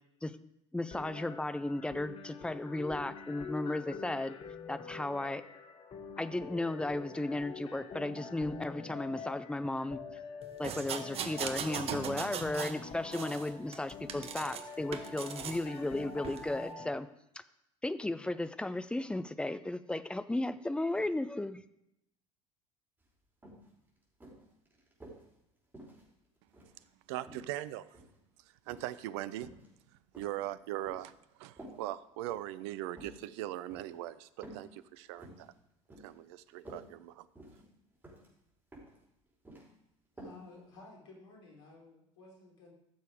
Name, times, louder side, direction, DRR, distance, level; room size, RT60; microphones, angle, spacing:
voice 1, 0.7-4.4 4.7-5.4 6.2-10.0 10.6-17.1 17.8-21.6, left 2 dB, 5° left, 12 dB, 0.6 m, -35 dB
sound 1, 0.9-16.9, left 5 dB, 35° left, 1.7 m, -46 dB
sound 2, 10.6-12.8 13.1-14.6 14.9-15.6 16.2-16.4, right 7 dB, 40° right, 1.0 m, -39 dB
sound 3, 23.0-23.1 23.4-23.7 24.2-25.3 25.7-26.8 27.3-28.2 28.7-29.0 29.3-29.7 30.1-31.1 31.6-31.8 32.2-32.5 32.9-33.2 33.7-33.9 34.4-34.7 35.0-35.5 35.9-36.2 36.5-36.9 37.4-37.7 38.0-38.3 38.7-39.0 39.3-39.7 40.2-40.4 40.7-40.8, right 1 dB, 10° right, 4.8 m, -51 dB
voice 2, 27.1-28.0 28.4-29.5 30.2-35.5 36.0-37.3, right 14 dB, 60° right, 16 dB, 0.6 m, -40 dB
voice 3, 40.2-42.7, left 3 dB, 65° left, -1 dB, 3.6 m, -54 dB
14.5 x 6.9 x 5.0 m, 0.81 s
figure-of-eight pair, 65°, 16 cm